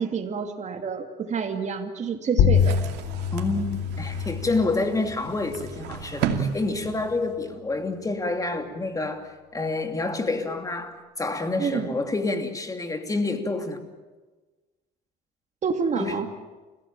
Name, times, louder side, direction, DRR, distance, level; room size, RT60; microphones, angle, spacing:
voice 1, 0.0-2.8 11.6-11.9 15.6-16.3, right 5 dB, 45° right, 2.6 m, -28 dB
sound 1, 2.4-7.5, left 7 dB, 90° left, 3.2 m, -27 dB
sound 2, 2.5-7.5, right 8 dB, 85° right, 2.6 m, -34 dB
voice 2, 3.3-13.8 16.0-16.2, left 3 dB, 20° left, 2.8 m, -28 dB
30.0 x 16.5 x 8.9 m
cardioid pair, 110°, 17 cm